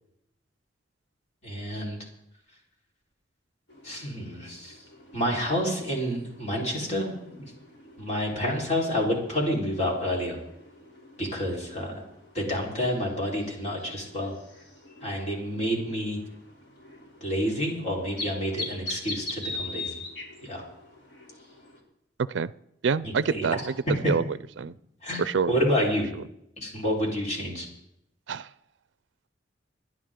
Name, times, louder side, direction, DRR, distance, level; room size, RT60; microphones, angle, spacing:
voice 1, 1.4-2.0 3.8-4.8 5.1-7.5 8.0-10.4 11.2-12.0 12.3-14.3 15.0-16.2 17.2-19.9 20.4-20.6 23.0-23.6 24.0-24.1 25.0-26.2 26.6-27.7, equal, 40° left, -2 dB, 4.2 m, -29 dB
sound 1, 3.7-21.8, left 2 dB, 65° left, 3.3 m, -43 dB
voice 2, 22.8-23.7 24.1-24.7 25.2-25.5 28.3-28.5, right 5 dB, 75° right, 18 dB, 0.4 m, -27 dB
29.0 x 10.5 x 3.8 m, 0.81 s
head